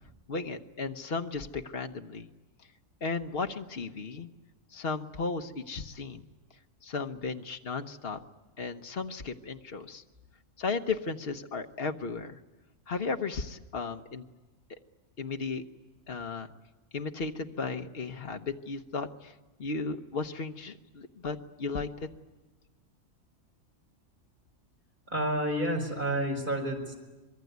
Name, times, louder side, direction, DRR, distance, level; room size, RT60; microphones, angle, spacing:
voice 1, 0.3-2.3 3.0-4.3 4.7-6.3 6.8-8.2 8.6-10.0 10.6-12.4 12.9-14.3 15.2-15.6 16.1-16.5 16.9-19.3 19.6-21.9, left 4 dB, 50° left, 6 dB, 1.3 m, -35 dB
voice 2, 25.1-27.0, right 1 dB, 40° right, 2 dB, 5.2 m, -30 dB
25.0 x 22.5 x 9.4 m, 1.2 s
omnidirectional pair, 1.3 m